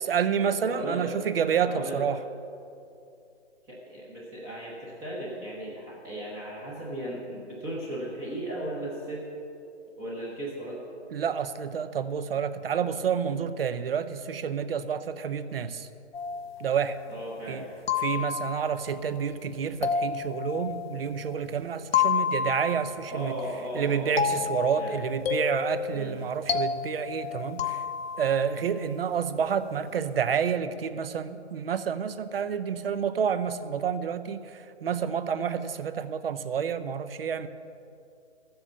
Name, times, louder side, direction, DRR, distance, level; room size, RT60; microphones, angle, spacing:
voice 1, 0.1-2.2 11.1-15.9 16.6-17.0 17.5-17.6 18.0-23.3 23.7-27.8 28.2-37.5, right 7 dB, 55° right, 13 dB, 0.7 m, -29 dB
voice 2, 0.7-1.2 1.7-2.0 3.7-9.3 10.0-10.8 17.1-17.7 23.1-25.0 25.9-26.2, right 1 dB, 10° right, -5 dB, 0.8 m, -36 dB
sound 1, 16.1-17.2 17.9-18.8 19.8-21.4 21.9-23.1 24.2-28.5, left 7 dB, 55° left, 0.8 m, -30 dB
13.5 x 7.8 x 6.7 m, 2.6 s
hypercardioid pair, 155°, 36 cm